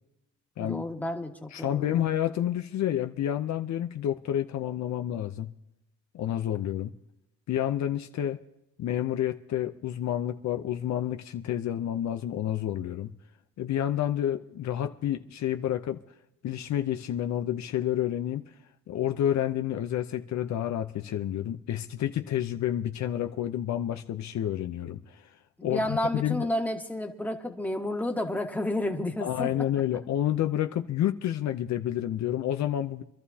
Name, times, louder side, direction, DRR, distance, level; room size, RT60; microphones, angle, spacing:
voice 1, 0.6-2.1 25.6-29.5, left 1 dB, 5° left, 1.7 m, -31 dB
voice 2, 1.5-5.5 6.1-6.9 7.5-8.4 8.8-13.1 13.6-16.0 16.4-18.5 18.9-25.3 25.6-26.5 29.2-33.0, left 11 dB, 65° left, 0.7 m, -29 dB
25.0 x 12.5 x 2.8 m
cardioid pair, 90°, 30 cm